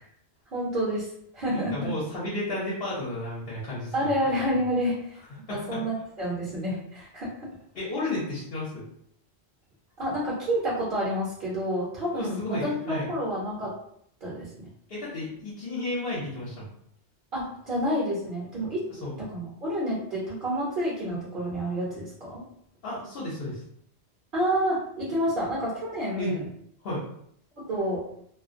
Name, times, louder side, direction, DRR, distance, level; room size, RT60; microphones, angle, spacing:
voice 1, 0.5-1.9 3.9-5.2 5.5-7.5 10.0-13.8 14.2-14.7 17.3-18.8 19.2-22.4 24.3-26.4 27.6-28.1, equal, 55° right, -6 dB, 0.9 m, -29 dB
voice 2, 1.5-4.1 5.5-5.8 7.7-8.8 12.1-13.1 14.9-16.7 19.0-19.2 22.8-23.6 26.2-26.3 26.8-27.0, left 1 dB, 60° left, -6 dB, 0.9 m, -32 dB
2.4 x 2.0 x 2.5 m, 0.69 s
omnidirectional pair, 1.1 m